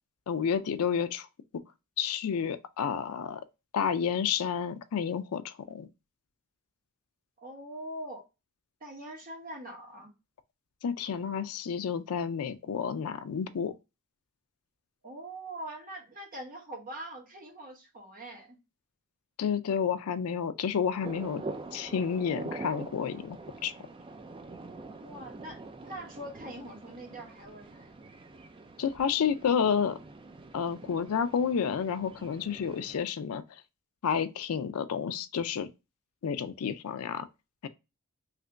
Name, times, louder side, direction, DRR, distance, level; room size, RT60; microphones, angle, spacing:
voice 1, 0.3-1.3 2.0-3.4 3.7-5.9 10.8-13.7 19.4-21.4 21.7-23.4 23.6-23.7 28.8-30.0 30.5-33.6 34.0-35.7 36.2-37.3 37.6-37.7, left 7 dB, 70° left, 0.4 m, -30 dB
voice 2, 7.4-8.2 8.8-10.1 15.0-18.6 24.9-28.0, right 1 dB, 40° right, 1.1 m, -43 dB
sound 1, 21.0-33.0, right 2 dB, 25° right, 0.3 m, -45 dB
3.3 x 2.9 x 2.5 m
head